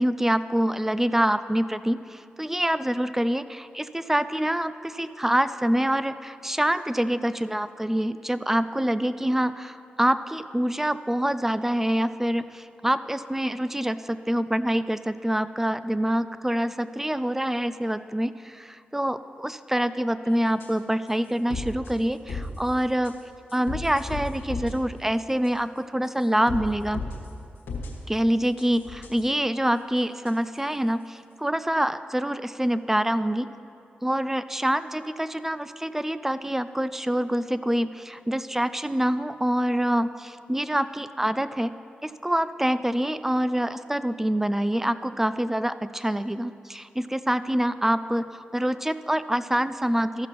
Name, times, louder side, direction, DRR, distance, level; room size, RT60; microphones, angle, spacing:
voice 1, 0.0-23.1 23.5-27.0 28.1-33.5 34.0-41.7 42.0-50.3, right 1 dB, 10° right, 14 dB, 0.4 m, -26 dB
sound 1, 20.3-20.4 20.6-20.7 21.1-21.2 21.5-21.9 22.3-22.7 23.0-23.1 23.5-24.7 25.4-25.5 26.0-26.6 26.9-27.3 27.7-27.9 28.4-29.3 30.3-30.4, left 3 dB, 85° left, 1.4 m, -34 dB
14.0 x 5.9 x 5.8 m, 2.5 s
cardioid pair, 50°, 4 cm